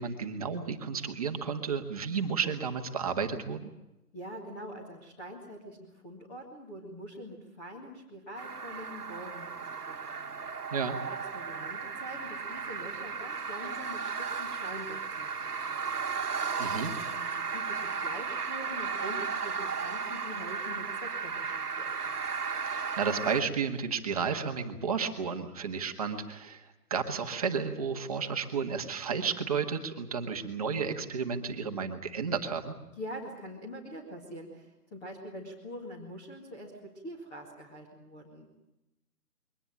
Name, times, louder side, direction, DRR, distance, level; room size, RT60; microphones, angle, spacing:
voice 1, 0.0-3.7 10.7-11.0 16.6-16.9 22.7-26.6 26.9-32.7, right 6 dB, 25° right, 5 dB, 1.8 m, -32 dB
voice 2, 4.1-10.2 11.1-15.8 17.2-22.2 33.0-38.6, equal, 10° left, -2 dB, 2.0 m, -44 dB
sound 1, 8.4-23.4, right 5 dB, 70° right, 1.8 m, -35 dB
23.0 x 19.0 x 8.8 m, 0.95 s
hypercardioid pair, 165°, 47 cm